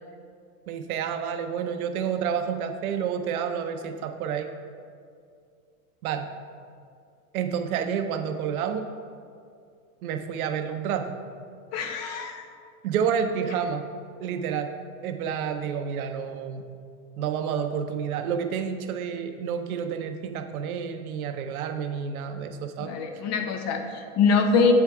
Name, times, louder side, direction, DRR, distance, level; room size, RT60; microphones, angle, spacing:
voice 1, 0.7-4.5 6.0-6.3 7.3-8.8 10.0-11.2 12.0-12.4 12.8-13.8 14.2-14.7 15.0-16.6 17.2-22.9, right 7 dB, 70° right, 7 dB, 0.7 m, -29 dB
voice 2, 11.7-12.4 22.8-24.7, left 5 dB, 35° left, 5 dB, 0.7 m, -24 dB
7.9 x 4.6 x 3.5 m, 2.3 s
hypercardioid pair, 105°, 45 cm